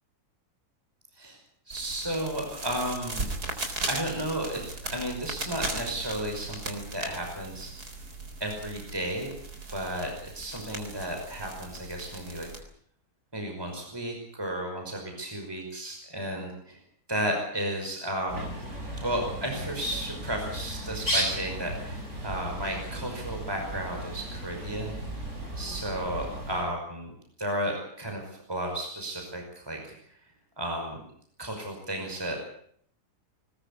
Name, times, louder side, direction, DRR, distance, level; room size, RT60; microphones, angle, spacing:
voice 1, 1.7-3.3 3.9-7.7 8.4-9.3 9.7-12.5 13.3-16.8 17.1-18.6 19.0-25.0 25.6-27.1 27.4-30.2 30.6-31.0 31.4-32.4, right 1 dB, 15° right, 2 dB, 5.6 m, -33 dB
sound 1, 1.7-12.6, right 2 dB, 70° right, 4.5 m, -38 dB
Bird, 18.3-26.6, right 1 dB, 45° right, 8.1 m, -35 dB
21.0 x 20.5 x 8.5 m, 0.64 s
omnidirectional pair, 1.7 m